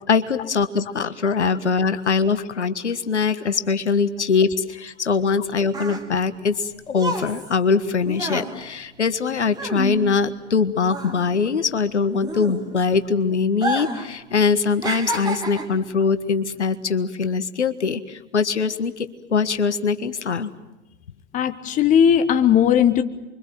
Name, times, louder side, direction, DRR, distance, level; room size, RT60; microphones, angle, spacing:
voice 1, 0.1-20.5, left 5 dB, 70° left, 11 dB, 1.6 m, -22 dB
sound 1, 5.2-10.6 10.8-13.0 13.5-14.1 14.4-15.8 16.5-16.7, right 2 dB, 10° right, 2.9 m, -30 dB
voice 2, 21.3-23.0, left 9 dB, 20° left, 10 dB, 1.3 m, -17 dB
29.0 x 24.5 x 7.6 m, 1.0 s
figure-of-eight pair, 100°, 36 cm